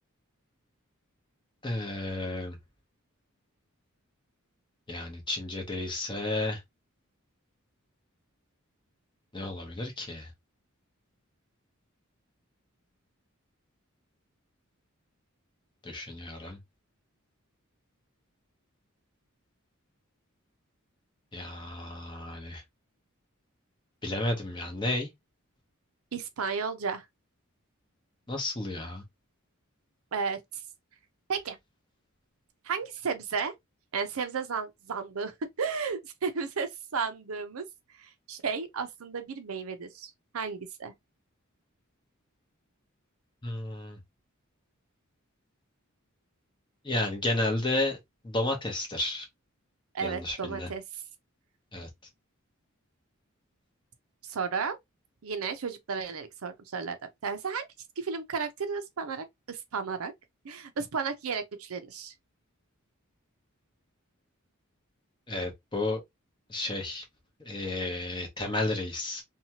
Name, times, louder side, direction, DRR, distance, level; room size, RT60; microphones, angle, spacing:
voice 1, 1.6-2.6 4.9-6.6 9.3-10.3 15.8-16.6 21.3-22.6 24.0-25.1 28.3-29.0 43.4-44.0 46.8-48.0 48.2-49.3 50.0-50.7 51.7-51.9 65.3-66.0 66.5-67.0 67.4-69.2, left 2 dB, 20° left, 0.8 m, -32 dB
voice 2, 26.1-27.0 30.1-30.6 31.3-31.6 32.6-33.5 33.9-37.7 38.0-40.9 49.9-50.8 54.2-54.8 55.2-57.6 58.0-60.1 60.4-62.1, right 5 dB, 80° right, 0.6 m, -33 dB
2.8 x 2.3 x 2.8 m
head